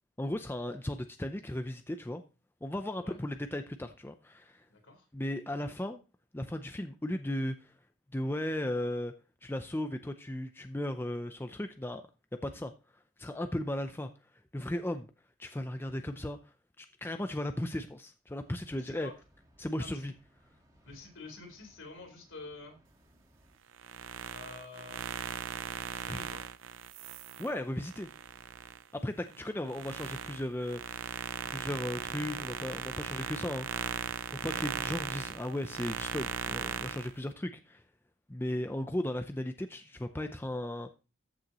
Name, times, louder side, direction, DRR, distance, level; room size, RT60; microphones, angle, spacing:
voice 1, 0.2-2.2 2.6-4.7 5.1-6.0 6.3-7.7 8.1-9.1 9.4-12.0 12.3-14.1 14.5-15.1 15.4-19.1 19.6-20.1 26.0-26.2 27.4-28.1 28.9-34.0 34.3-37.8 38.3-40.9, left 1 dB, 10° left, 7 dB, 0.5 m, -36 dB
voice 2, 4.7-5.1 18.7-19.1 19.8-20.1 20.8-22.8 24.3-25.1 25.5-26.4 34.9-35.0, left 3 dB, 75° left, 1 dB, 4.0 m, -49 dB
sound 1, 18.4-23.6, equal, 15° right, 1.5 m, -65 dB
sound 2, 23.7-28.8 29.3-37.1, right 7 dB, 75° right, 0.6 m, -38 dB
14.0 x 6.6 x 3.0 m, 0.31 s
head